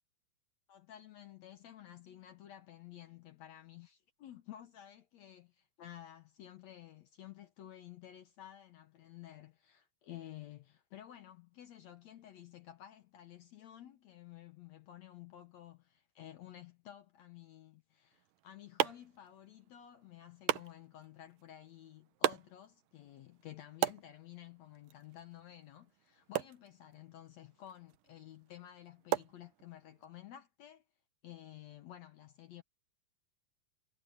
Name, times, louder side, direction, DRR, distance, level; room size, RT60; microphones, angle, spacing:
voice 1, 0.7-30.8 31.2-32.6, left 12 dB, 75° left, 1.6 m, -53 dB
sound 1, 18.1-30.1, right 13 dB, 70° right, 2.3 m, -40 dB
omnidirectional pair, 4.5 m